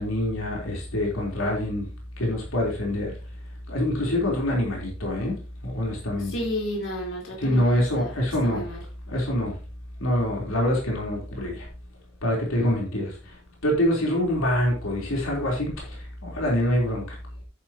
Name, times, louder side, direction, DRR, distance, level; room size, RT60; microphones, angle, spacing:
voice 1, 0.0-1.9 2.2-3.1 3.7-5.3 5.6-6.3 7.4-8.6 9.1-9.5 10.0-11.7 12.2-13.3 13.6-17.2, left 1 dB, 90° left, -1 dB, 3.8 m, -25 dB
voice 2, 6.3-8.8, equal, 65° left, -2 dB, 4.2 m, -32 dB
10.5 x 9.6 x 3.0 m, 0.35 s
head